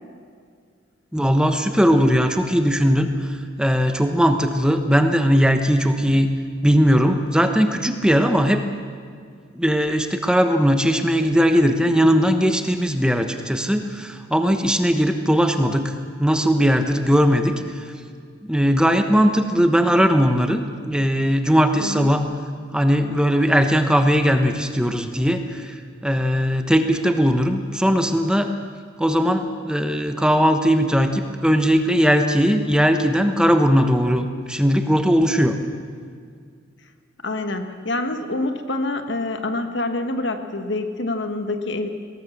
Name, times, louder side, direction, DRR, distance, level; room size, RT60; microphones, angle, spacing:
voice 1, 1.1-6.3 6.6-8.7 9.5-15.9 16.2-17.9 18.4-22.2 22.7-28.5 29.0-35.6, equal, 5° right, 6 dB, 1.1 m, -19 dB
voice 2, 37.2-41.9, left 2 dB, 65° left, 7 dB, 1.6 m, -26 dB
21.0 x 18.0 x 7.4 m, 2.1 s
head